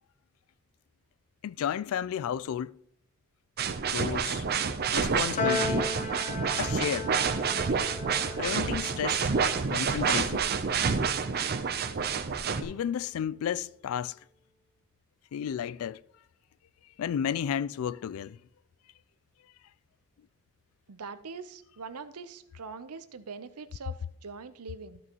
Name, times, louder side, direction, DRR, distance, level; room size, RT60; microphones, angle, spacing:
voice 1, 1.4-2.8 3.9-4.4 4.9-6.0 6.6-7.1 8.4-9.3 9.7-10.5 12.6-14.1 15.3-16.0 17.0-18.4, left 9 dB, 65° left, 0.3 m, -32 dB
sound 1, 3.6-12.6, right 6 dB, 45° right, 0.6 m, -28 dB
Piano, 5.4-11.9, left 3 dB, 35° left, 0.9 m, -37 dB
voice 2, 20.9-25.0, right 4 dB, 85° right, 0.7 m, -43 dB
13.5 x 6.2 x 3.0 m
head